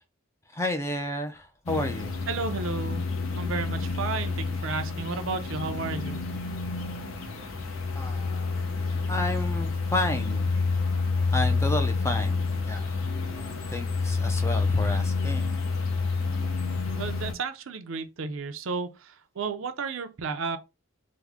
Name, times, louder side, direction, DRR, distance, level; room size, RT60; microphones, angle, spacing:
voice 1, 0.5-2.1 7.9-10.5 11.3-13.0 13.3-15.6, left 1 dB, 15° left, 0.4 m, -32 dB
sound 1, 1.7-17.3, left 4 dB, 70° left, 0.7 m, -28 dB
voice 2, 2.3-3.1 3.4-6.2 16.9-20.6, right 4 dB, 65° right, 0.5 m, -32 dB
3.6 x 2.1 x 3.4 m
head